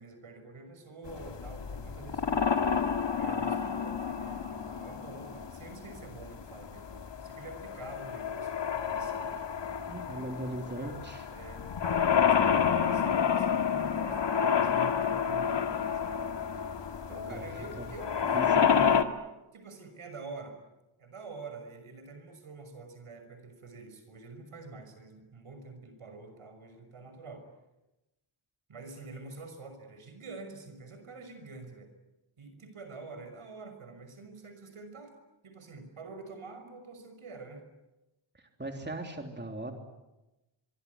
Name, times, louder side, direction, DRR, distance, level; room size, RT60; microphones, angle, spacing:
voice 1, 0.0-2.5 2.8-2.9 3.2-9.4 10.1-11.0 11.3-16.2 17.1-18.7 19.5-20.6 21.0-27.5 28.7-31.9 32.4-35.1 35.4-37.6, right 3 dB, 80° right, 8 dB, 6.1 m, -47 dB
sound 1, 1.1-19.0, left 7 dB, 60° left, 2.0 m, -29 dB
voice 2, 9.9-11.2 17.3-17.5 17.8-17.9 18.2-18.9 38.3-39.7, right 1 dB, 20° right, 3 dB, 3.3 m, -38 dB
24.5 x 24.0 x 9.7 m, 1.0 s
wide cardioid pair, 120°, 49 cm